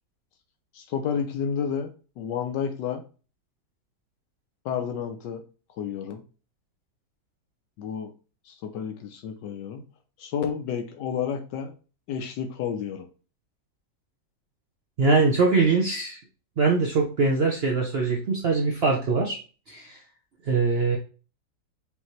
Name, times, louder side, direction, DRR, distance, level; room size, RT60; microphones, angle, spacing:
voice 1, 0.7-1.9 2.2-3.0 4.6-5.4 5.8-6.2 7.8-8.1 8.5-9.8 10.2-11.7 12.1-13.1, left 7 dB, 80° left, 6 dB, 1.3 m, -30 dB
voice 2, 15.0-16.2 16.6-19.4 19.7-20.0 20.4-21.0, right 4 dB, 75° right, 1 dB, 0.5 m, -22 dB
5.3 x 2.7 x 3.1 m, 0.35 s
omnidirectional pair, 1.9 m